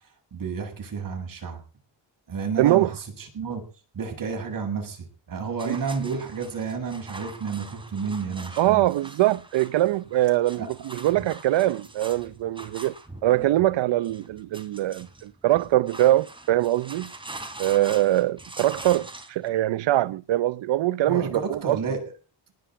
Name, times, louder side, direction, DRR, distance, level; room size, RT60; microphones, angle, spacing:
voice 1, 0.3-1.6 2.3-3.6 3.9-8.8 10.6-10.7 21.0-22.1, right 5 dB, 50° right, 7.7 m, -31 dB
voice 2, 2.6-2.9 5.7-5.8 8.6-12.9 13.2-17.1 17.6-21.8, right 15 dB, 80° right, 0.8 m, -23 dB
sound 1, 5.6-19.5, right 2 dB, 10° right, 3.2 m, -43 dB
19.0 x 7.6 x 9.1 m
cardioid pair, 135°, 44 cm